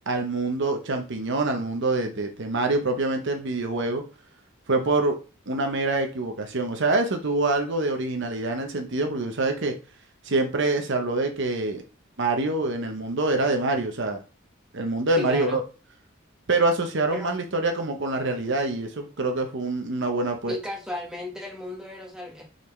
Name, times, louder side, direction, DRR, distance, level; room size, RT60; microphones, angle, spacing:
voice 1, 0.1-4.0 4.7-5.1 5.5-9.7 10.2-11.8 12.2-14.2 14.7-15.6 16.5-20.5, right 2 dB, 65° right, 5 dB, 1.0 m, -25 dB
voice 2, 15.2-15.6 17.1-17.3 20.5-22.4, left 1 dB, 5° right, -1 dB, 1.6 m, -34 dB
7.0 x 4.2 x 3.3 m, 0.34 s
head